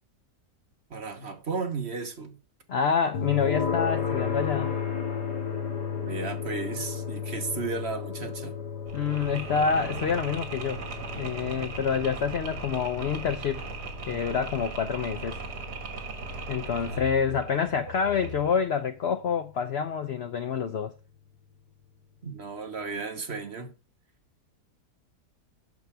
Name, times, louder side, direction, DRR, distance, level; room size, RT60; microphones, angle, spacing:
voice 1, 0.9-2.4 6.0-8.5 16.8-17.2 22.2-23.7, right 4 dB, 45° right, 1.3 m, -34 dB
voice 2, 2.7-4.8 8.9-10.8 11.1-13.6 14.1-15.4 16.5-20.9, left 6 dB, 70° left, 0.6 m, -27 dB
sound 1, 3.1-18.1, left 6 dB, 90° left, 2.6 m, -34 dB
Mechanisms, 8.9-18.6, right 3 dB, 75° right, 2.1 m, -38 dB
8.4 x 6.5 x 3.3 m
omnidirectional pair, 1.7 m